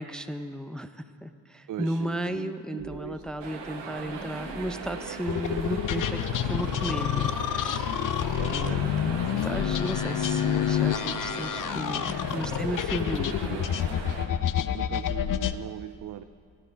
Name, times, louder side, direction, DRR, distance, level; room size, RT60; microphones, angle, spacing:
voice 1, 0.0-7.9 8.5-13.7, right 1 dB, ahead, 10 dB, 0.5 m, -34 dB
voice 2, 1.7-3.2 8.4-8.9 13.3-13.7 14.7-16.2, right 11 dB, 45° right, 11 dB, 0.5 m, -39 dB
sound 1, 2.8-12.8, equal, 25° right, 2.2 m, -45 dB
sound 2, 3.4-14.3, right 5 dB, 70° right, 1.4 m, -39 dB
sound 3, 5.3-15.6, left 10 dB, 45° left, 0.6 m, -28 dB
13.5 x 9.6 x 5.1 m, 2.1 s
hypercardioid pair, 40°, 45 cm